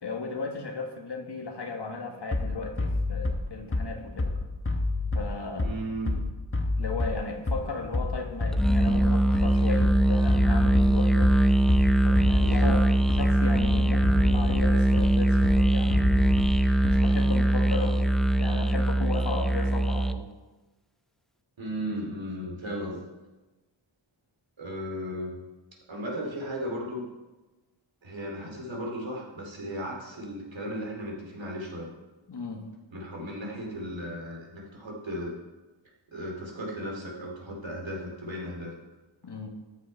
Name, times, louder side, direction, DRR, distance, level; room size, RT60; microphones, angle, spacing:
voice 1, 0.0-4.4 5.1-5.7 6.8-11.3 12.0-12.8 13.2-16.3 16.8-18.1 18.4-20.2 32.3-32.7 39.2-39.5, left 3 dB, 55° left, 3 dB, 1.6 m, -35 dB
Bass drum, 2.3-17.3, left 2 dB, 25° left, 1.1 m, -29 dB
voice 2, 5.6-6.1 12.4-12.8 21.6-23.0 24.6-25.3 25.9-27.1 28.0-31.9 32.9-35.3 36.1-38.7, equal, 70° right, -1 dB, 2.7 m, -35 dB
Musical instrument, 8.5-20.3, right 1 dB, ahead, 0.4 m, -22 dB
13.0 x 6.3 x 4.5 m, 1.1 s
wide cardioid pair, 75°, 48 cm